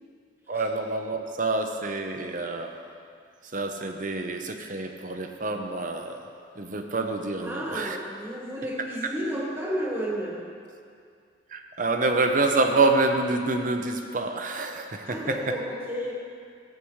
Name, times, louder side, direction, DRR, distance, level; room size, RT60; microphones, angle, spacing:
voice 1, 0.5-2.7 3.4-6.3 6.6-8.0 11.5-15.6, right 3 dB, 45° right, 5 dB, 0.8 m, -27 dB
voice 2, 7.4-10.5 15.1-16.1, equal, 15° right, -4 dB, 1.6 m, -32 dB
15.5 x 8.6 x 3.2 m, 2.3 s
head